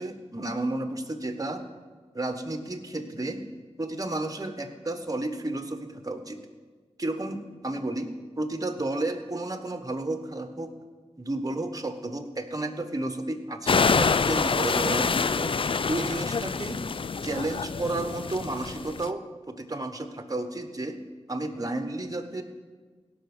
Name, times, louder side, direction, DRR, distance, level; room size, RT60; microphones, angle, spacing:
voice 1, 0.0-1.6 2.1-3.4 3.8-6.4 7.0-8.1 8.4-10.7 11.2-15.6 15.9-16.8 17.2-21.0 21.3-22.4, right 2 dB, 30° right, 7 dB, 1.4 m, -32 dB
sound 1, 13.7-19.1, left 5 dB, 50° left, 0.4 m, -26 dB
17.0 x 5.8 x 6.2 m, 1.4 s
cardioid pair, 40°, 12 cm